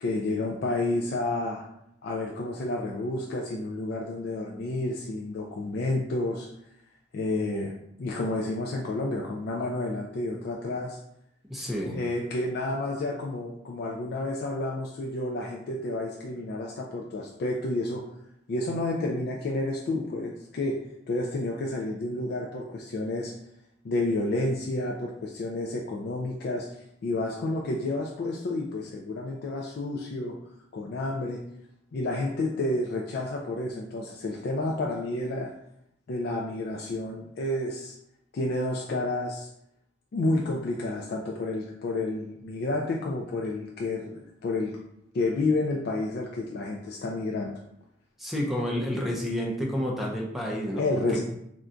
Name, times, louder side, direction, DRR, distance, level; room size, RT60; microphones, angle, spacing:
voice 1, 0.0-1.7 2.0-6.5 7.1-7.7 8.0-11.0 11.9-18.0 18.5-20.8 21.1-23.3 23.8-30.4 30.7-31.4 31.9-35.5 36.1-37.9 38.3-39.5 40.1-44.8 45.1-47.5 50.8-51.2, left 2 dB, 55° left, -1 dB, 0.3 m, -30 dB
voice 2, 11.5-12.0 48.2-51.2, equal, ahead, -1 dB, 0.5 m, -30 dB
2.5 x 2.2 x 3.6 m, 0.76 s
head